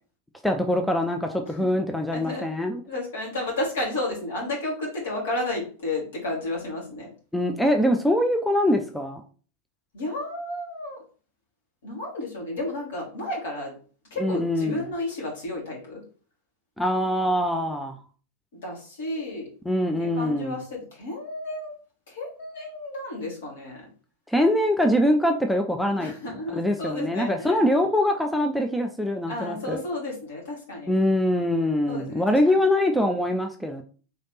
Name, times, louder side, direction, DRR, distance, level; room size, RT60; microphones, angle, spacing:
voice 1, 0.4-2.8 7.3-9.2 14.2-14.8 16.8-18.0 19.7-20.6 24.3-26.1 26.5-29.8 30.9-33.8, left 1 dB, ahead, 3 dB, 0.5 m, -23 dB
voice 2, 2.1-2.5 2.9-7.1 9.9-11.0 11.8-13.7 14.1-16.0 18.6-19.5 20.0-21.7 22.1-23.9 26.0-27.6 29.3-30.9 31.9-32.6, left 2 dB, 60° left, -3 dB, 2.3 m, -32 dB
4.0 x 3.3 x 4.0 m, 0.40 s
figure-of-eight pair, 90°, 0 cm